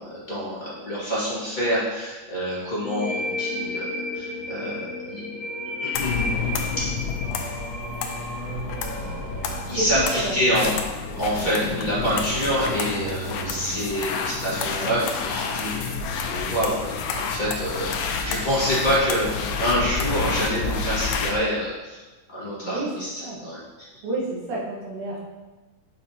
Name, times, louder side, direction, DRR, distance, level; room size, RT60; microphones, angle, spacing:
voice 1, 0.0-5.4 5.8-6.3 6.7-6.8 8.1-8.2 9.7-10.7 11.1-16.8 17.2-22.0 22.3-23.1 23.4-23.6, equal, 35° left, -10 dB, 0.7 m, -26 dB
sound 1, 2.8-10.2, left 2 dB, 15° right, 1.2 m, -33 dB
sound 2, 5.9-21.4, left 5 dB, 80° left, 1.7 m, -29 dB
Singing, 7.2-14.6, right 5 dB, 80° right, 2.2 m, -38 dB
voice 2, 9.8-10.4 11.4-11.5 22.6-23.4 24.0-25.3, right 2 dB, 55° right, -5 dB, 1.9 m, -30 dB
6.6 x 5.3 x 2.8 m, 1.2 s
omnidirectional pair, 3.7 m